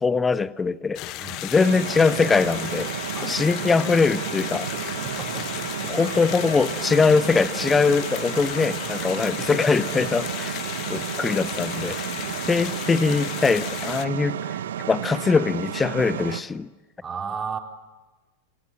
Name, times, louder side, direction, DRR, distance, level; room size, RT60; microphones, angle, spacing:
voice 1, 0.0-1.0 1.4-2.9 3.2-4.7 5.9-10.5 10.9-12.0 12.4-14.4 14.9-16.7, left 4 dB, 15° left, 18 dB, 0.9 m, -22 dB
sound 1, 0.9-14.0, left 16 dB, 40° left, 1.1 m, -34 dB
sound 2, 1.6-16.4, right 10 dB, 65° right, 1.0 m, -32 dB
voice 2, 3.1-3.4 5.0-5.5 5.9-6.1 11.2-11.4 11.9-12.0 17.0-17.6, right 6 dB, 20° right, 4 dB, 3.7 m, -35 dB
28.5 x 27.5 x 7.5 m, 1.2 s
figure-of-eight pair, 90°, 0 cm